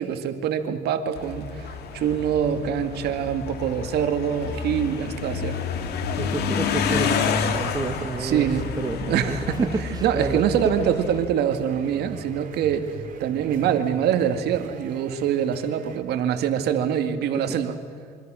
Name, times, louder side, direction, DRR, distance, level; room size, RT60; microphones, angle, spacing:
voice 1, 0.0-5.6 8.2-8.7 9.0-12.9 13.2-17.8, right 9 dB, 75° right, 7 dB, 2.2 m, -24 dB
sound 1, 1.1-11.2, left 6 dB, 75° left, 2.6 m, -29 dB
voice 2, 6.2-8.5 8.8-10.7 17.3-17.6, right 4 dB, 20° right, 8 dB, 1.2 m, -30 dB
sound 2, 6.5-16.0, right 6 dB, 55° right, 3.0 m, -43 dB
27.0 x 25.0 x 6.4 m, 2.2 s
cardioid pair, 110°, 17 cm